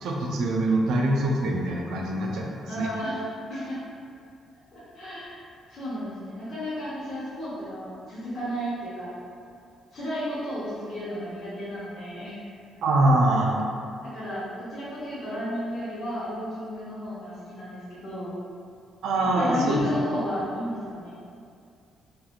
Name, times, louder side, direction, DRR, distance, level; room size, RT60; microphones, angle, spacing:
voice 1, 0.0-2.9 12.8-13.6 19.0-19.8, right 1 dB, 75° right, -1 dB, 0.4 m, -24 dB
voice 2, 2.7-3.2 3.5-3.8 4.7-9.1 9.9-12.4 14.1-18.3 19.3-21.1, equal, 55° left, -11 dB, 0.8 m, -33 dB
2.9 x 2.5 x 2.4 m, 2.4 s
cardioid pair, 90°, 0 cm